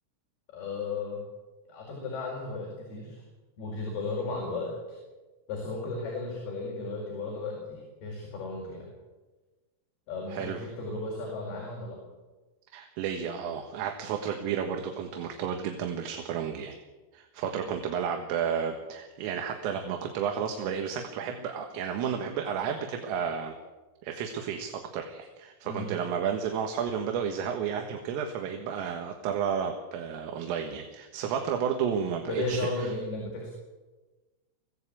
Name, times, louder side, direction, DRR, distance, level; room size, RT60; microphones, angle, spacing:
voice 1, 0.5-1.2 1.7-3.2 3.6-5.0 5.5-8.9 10.1-12.0 17.6-17.7 25.6-25.9 32.3-33.5, left 3 dB, 50° left, -2 dB, 6.4 m, -35 dB
voice 2, 10.3-10.6 12.7-16.7 17.1-23.5 24.0-32.9, right 7 dB, 80° right, 4 dB, 4.1 m, -32 dB
24.5 x 16.5 x 8.6 m, 1.2 s
omnidirectional pair, 5.8 m